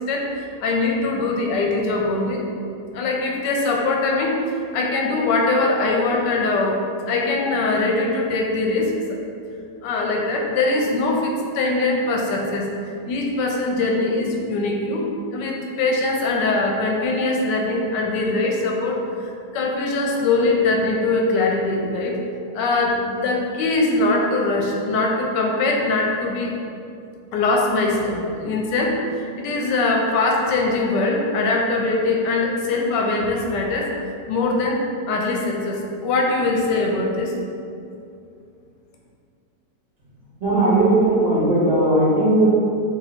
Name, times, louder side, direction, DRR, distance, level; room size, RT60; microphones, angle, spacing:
voice 1, 0.1-2.5 2.9-9.2 9.8-22.2 22.5-26.5 27.3-33.9 34.3-34.8 35.1-37.3, left 2 dB, 80° left, 0 dB, 1.2 m, -22 dB
voice 2, 40.4-42.5, right 1 dB, 40° right, -9 dB, 1.1 m, -17 dB
2.9 x 2.8 x 4.1 m, 2.4 s
omnidirectional pair, 1.9 m